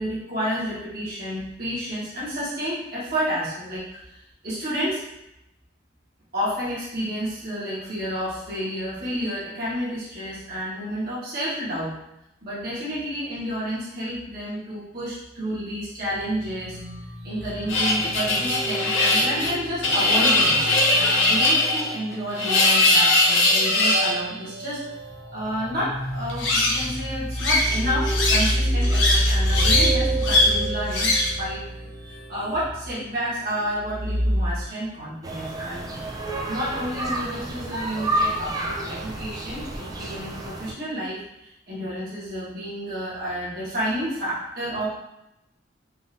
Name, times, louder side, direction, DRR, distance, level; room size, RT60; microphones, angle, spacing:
voice 1, 0.0-5.0 6.3-11.9 12.4-16.8 17.2-24.8 25.3-35.9 36.5-44.9, equal, 55° right, -9 dB, 1.2 m, -30 dB
sound 1, 16.0-34.6, right 1 dB, 50° left, 1.5 m, -29 dB
sound 2, 17.7-24.1 26.3-26.9 27.4-28.5 28.8-29.9 30.2-30.5 30.9-31.4, left 2 dB, 80° left, 0.6 m, -20 dB
sound 3, 35.2-40.7, right 1 dB, 20° right, 0.3 m, -30 dB
3.7 x 2.5 x 2.6 m, 0.87 s
head